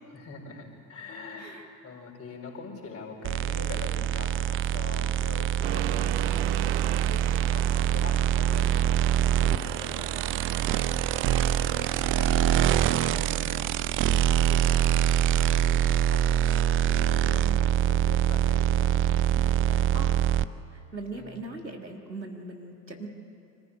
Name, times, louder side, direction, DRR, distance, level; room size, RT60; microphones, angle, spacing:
voice 1, 0.1-6.6 7.1-10.7 11.1-19.1 19.6-20.2 20.5-20.7 21.1-21.5, left 4 dB, 30° left, 0 dB, 4.6 m, -43 dB
sound 1, 3.2-20.4, right 10 dB, 25° right, 0.5 m, -24 dB
Accelerating revving vroom, 5.6-13.4, right 14 dB, 50° right, 0.9 m, -38 dB
voice 2, 17.2-17.6 19.0-20.1 20.7-23.1, right 2 dB, 90° right, 3 dB, 1.9 m, -41 dB
24.5 x 14.5 x 10.0 m, 2.5 s
figure-of-eight pair, 70°, 50 cm